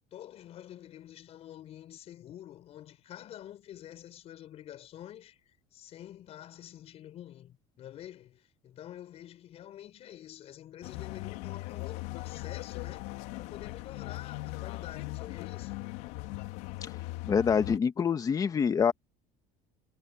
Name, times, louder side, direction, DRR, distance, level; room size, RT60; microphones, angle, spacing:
voice 1, 0.1-15.9, left 12 dB, 40° left, 5.4 m, -48 dB
sound 1, 10.8-17.8, left 20 dB, 85° left, 3.3 m, -39 dB
voice 2, 17.3-18.9, left 6 dB, 20° left, 1.5 m, -26 dB
cardioid pair, 165°, 16 cm